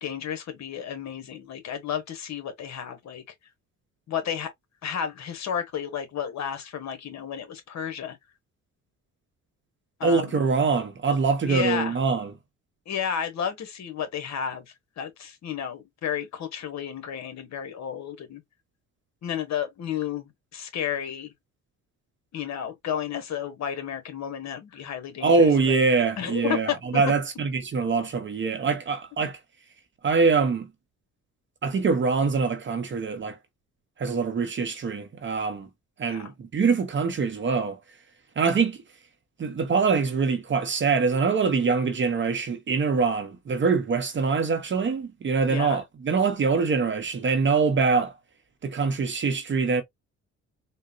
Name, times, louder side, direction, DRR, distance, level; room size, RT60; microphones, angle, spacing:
voice 1, 0.0-3.2 4.1-4.5 4.8-8.2 10.0-10.4 11.4-12.0 12.9-14.6 15.0-18.4 19.2-21.3 22.3-25.8 26.2-27.0 36.1-36.3 45.5-45.8, left 8 dB, 65° left, 1.1 m, -32 dB
voice 2, 10.0-12.3 25.2-29.4 30.0-30.7 31.6-33.4 34.0-35.7 36.0-37.8 38.4-38.8 39.4-48.1 48.6-49.8, right 4 dB, 40° right, 0.7 m, -24 dB
3.7 x 2.1 x 2.5 m
cardioid pair, 90°, 30 cm